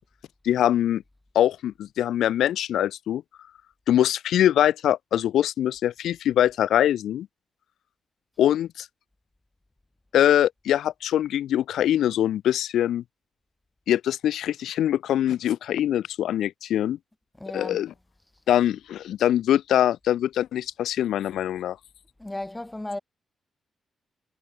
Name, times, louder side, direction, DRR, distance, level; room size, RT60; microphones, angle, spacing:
voice 1, 0.4-1.0 1.3-3.2 3.9-7.3 8.4-8.9 10.1-13.0 13.9-17.0 17.5-17.9 18.5-21.8, left 11 dB, 85° left, 0.8 m, -23 dB
voice 2, 17.4-17.8 22.2-23.0, left 1 dB, 10° left, 1.0 m, -34 dB
wide cardioid pair, 165°, 0 cm